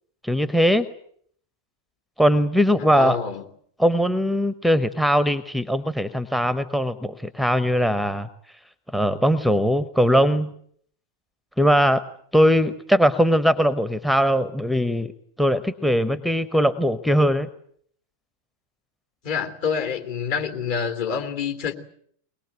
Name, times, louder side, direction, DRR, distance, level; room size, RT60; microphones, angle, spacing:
voice 1, 0.2-0.9 2.2-3.2 3.8-8.3 8.9-10.5 11.6-12.0 12.3-15.1 15.4-17.5, equal, ahead, 0.9 m, -20 dB
voice 2, 2.8-3.4 19.2-21.7, left 6 dB, 50° left, 2.9 m, -27 dB
22.5 x 21.0 x 9.0 m
figure-of-eight pair, 90°, 0 cm